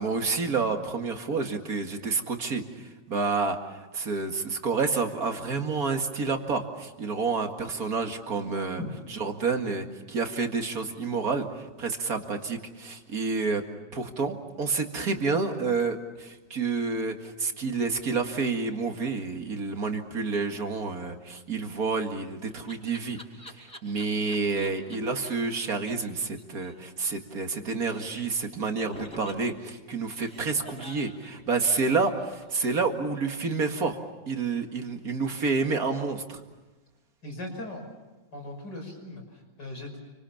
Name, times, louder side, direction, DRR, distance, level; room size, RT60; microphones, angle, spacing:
voice 1, 0.0-8.8 9.2-13.6 13.9-23.2 23.5-34.0 34.3-36.4, right 4 dB, 50° right, 5 dB, 2.4 m, -29 dB
Laughter, 21.9-25.0 25.2-25.3 25.5-25.6 25.9-26.0 26.2-27.5 27.8-28.4 28.9-32.7, equal, 5° left, 5.5 m, -47 dB
voice 2, 37.2-37.8 38.3-40.0, left 1 dB, 70° left, 2 dB, 6.7 m, -38 dB
29.5 x 25.0 x 7.2 m, 1.2 s
omnidirectional pair, 2.0 m